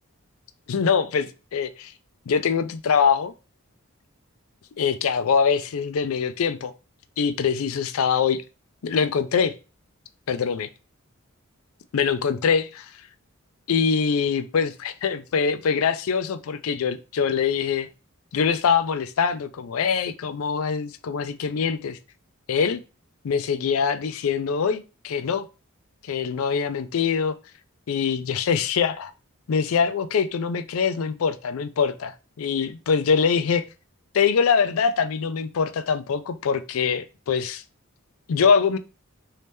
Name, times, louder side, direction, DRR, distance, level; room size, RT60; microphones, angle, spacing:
voice 1, 0.7-1.9 2.3-3.3 4.8-6.7 7.2-8.4 8.8-9.6 10.3-10.7 11.9-12.9 13.7-17.9 18.3-22.0 22.5-22.8 23.2-25.5 26.0-27.4 27.9-29.1 29.5-33.6 34.1-37.6 38.3-38.8, left 6 dB, 75° left, 0.4 m, -23 dB
3.2 x 2.8 x 3.3 m
head